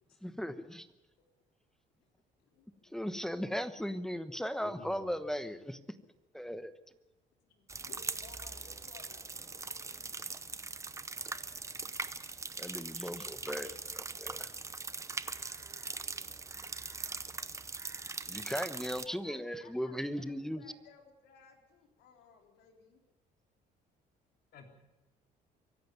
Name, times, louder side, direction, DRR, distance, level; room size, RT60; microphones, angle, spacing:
voice 1, 0.2-0.9 2.9-5.8 6.3-6.7 12.6-14.5 18.3-20.6, equal, 5° left, 12 dB, 1.1 m, -37 dB
voice 2, 4.6-5.2 7.5-7.7 24.5-24.7, left 5 dB, 65° left, 3 dB, 3.6 m, -52 dB
voice 3, 7.7-10.3 18.9-23.0, left 6 dB, 80° left, 3 dB, 3.9 m, -59 dB
sound 1, 7.7-19.1, right 3 dB, 15° right, 0.8 m, -41 dB
24.5 x 11.5 x 9.4 m, 1.1 s
cardioid pair, 110°, 17 cm